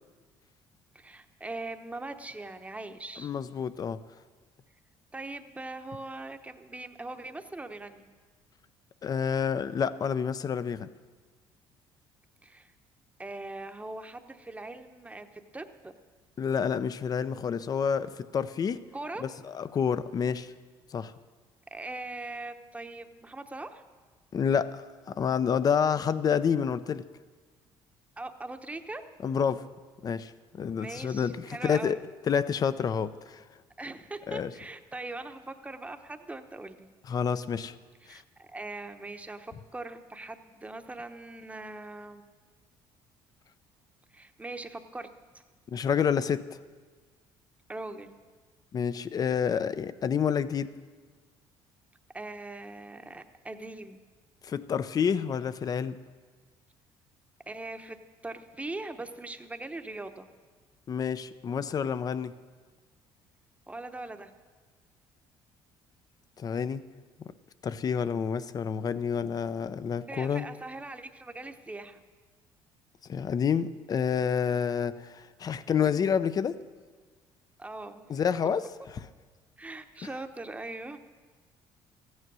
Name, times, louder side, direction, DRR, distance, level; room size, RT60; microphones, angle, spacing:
voice 1, 0.9-3.3 5.1-8.1 12.4-12.7 13.2-16.0 18.9-19.2 21.7-23.8 28.2-29.0 30.8-32.0 33.8-36.9 38.0-42.3 44.1-45.1 47.7-48.2 52.1-54.0 57.5-58.0 58.2-60.3 63.7-64.3 70.1-72.0 77.6-78.2 79.6-81.0, right 2 dB, 15° right, 7 dB, 0.9 m, -41 dB
voice 2, 3.2-4.0 9.0-10.9 16.4-18.8 19.2-20.5 20.9-21.1 24.3-27.0 29.2-29.7 30.0-32.0 32.3-33.4 34.3-34.5 37.1-37.7 38.1-38.2 45.7-46.4 48.7-50.7 54.4-56.0 60.9-62.3 66.4-66.8 67.6-70.5 73.1-76.6 78.1-78.6, left 7 dB, 40° left, 15 dB, 0.6 m, -28 dB
14.0 x 9.6 x 6.2 m, 1.4 s
supercardioid pair, 85°, 10 cm